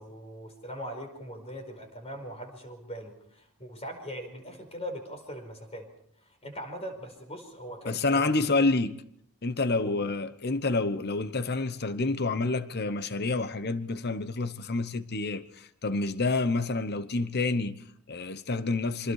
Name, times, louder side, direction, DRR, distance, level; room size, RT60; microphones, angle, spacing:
voice 1, 0.0-5.9 6.2-8.4 9.8-10.0, equal, 30° left, 5.1 m, -41 dB
voice 2, 7.9-9.0 9.4-19.1, left 3 dB, 50° left, 1.0 m, -28 dB
27.5 x 25.0 x 4.9 m
head